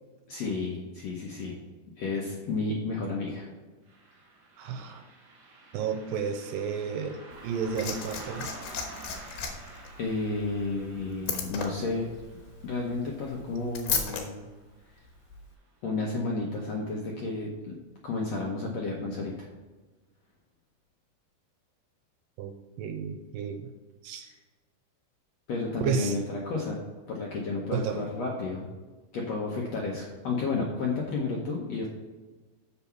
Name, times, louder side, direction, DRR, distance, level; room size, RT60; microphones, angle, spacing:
voice 1, 0.3-1.5 2.0-3.5 9.2-9.4 10.0-12.1 12.6-14.4 15.8-17.7 18.0-19.5 24.2-24.3 25.5-26.8 27.1-28.6 29.1-31.9, left 3 dB, 70° left, -2 dB, 1.6 m, -32 dB
Car passing by, 3.9-14.7 15.0-15.1 16.0-16.2 16.7-16.8 17.3-17.4, right 2 dB, 40° right, 1.7 m, -49 dB
voice 2, 4.6-5.0 5.7-7.2 7.4-8.5 22.4-22.5 22.8-23.7 24.0-24.3 25.8-26.1 27.7-28.0, right 6 dB, 80° right, 6 dB, 2.3 m, -31 dB
Liquid, 7.3-14.2 15.3-15.4, left 7 dB, 85° left, 3.1 m, -36 dB
7.7 x 7.1 x 4.5 m, 1.3 s
omnidirectional pair, 4.3 m